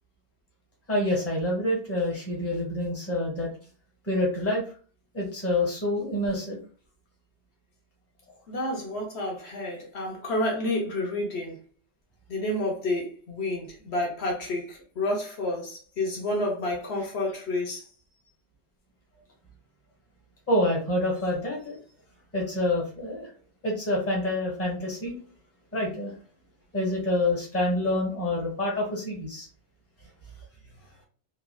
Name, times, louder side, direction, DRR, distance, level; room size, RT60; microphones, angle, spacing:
voice 1, 0.9-3.5 4.0-4.6 5.1-6.6 20.5-21.8 22.3-23.3 23.6-25.2 25.7-26.1 26.7-29.5, left 1 dB, 15° left, 1.0 m, -27 dB
voice 2, 8.5-11.6 12.3-17.9, left 1 dB, 65° left, 1.0 m, -30 dB
3.1 x 2.4 x 2.2 m
omnidirectional pair, 1.2 m